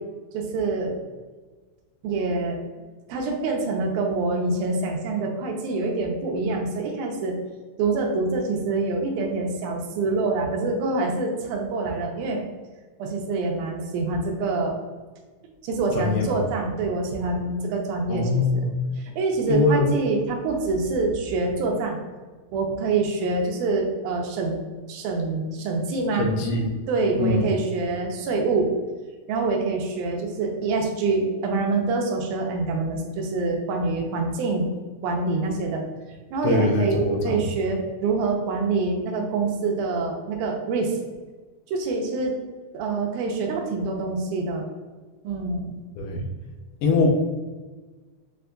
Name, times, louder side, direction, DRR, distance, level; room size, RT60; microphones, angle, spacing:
voice 1, 0.3-1.0 2.0-2.6 3.1-7.4 7.8-12.4 13.0-14.8 15.6-18.7 19.0-22.0 22.5-24.6 24.9-26.3 26.9-28.7 29.3-34.7 35.0-35.8 36.3-41.0 41.7-42.4 42.7-44.7 45.2-45.8, right 3 dB, 80° right, 1 dB, 2.0 m, -26 dB
voice 2, 16.0-16.4 18.1-18.7 19.5-19.9 26.2-26.7 27.2-27.4 36.4-37.4 46.0-46.2 46.8-47.1, left 3 dB, 85° left, 1 dB, 2.2 m, -22 dB
6.3 x 2.6 x 2.2 m, 1.3 s
omnidirectional pair, 3.8 m